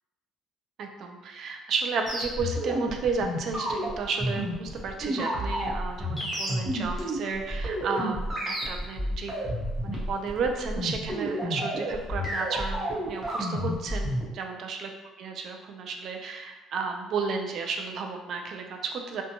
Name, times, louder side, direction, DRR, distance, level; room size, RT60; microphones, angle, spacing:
voice 1, 0.8-9.3 9.8-14.9 15.2-19.2, right 4 dB, 55° right, 3 dB, 0.3 m, -32 dB
sound 1, 2.1-14.2, equal, 10° right, 0.7 m, -30 dB
2.7 x 2.2 x 2.7 m, 1.1 s
cardioid pair, 135°, 0 cm